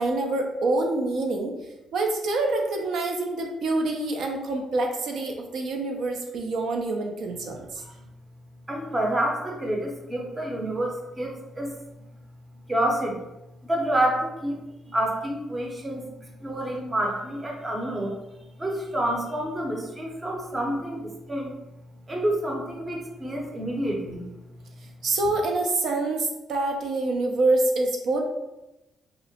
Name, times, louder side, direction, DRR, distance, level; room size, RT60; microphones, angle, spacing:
voice 1, 0.0-1.5 1.9-7.8 25.0-28.3, right 2 dB, 70° right, 2 dB, 0.4 m, -26 dB
voice 2, 8.7-11.8 12.7-13.2 13.6-18.2 18.6-21.5 22.1-24.3, right 1 dB, 20° right, 0 dB, 0.6 m, -28 dB
2.8 x 2.0 x 2.8 m, 0.97 s
cardioid pair, 90°, 0 cm